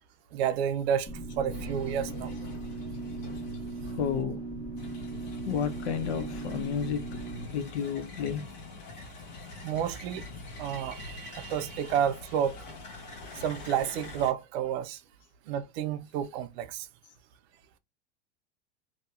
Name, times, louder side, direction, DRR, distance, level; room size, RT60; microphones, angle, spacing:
voice 1, 0.3-1.1 1.4-2.3 9.6-10.3 10.6-12.6 13.3-15.0 15.5-16.9, right 9 dB, 70° right, 0.5 m, -30 dB
sound 1, 1.1-7.4, right 2 dB, 15° left, 1.3 m, -38 dB
sound 2, 1.5-4.2 4.8-14.3, left 2 dB, 55° left, 1.5 m, -45 dB
voice 2, 3.9-4.5 5.4-7.2 7.5-8.4 9.3-9.4, left 7 dB, 85° left, 0.8 m, -32 dB
2.8 x 2.2 x 2.4 m
supercardioid pair, 130°, 32 cm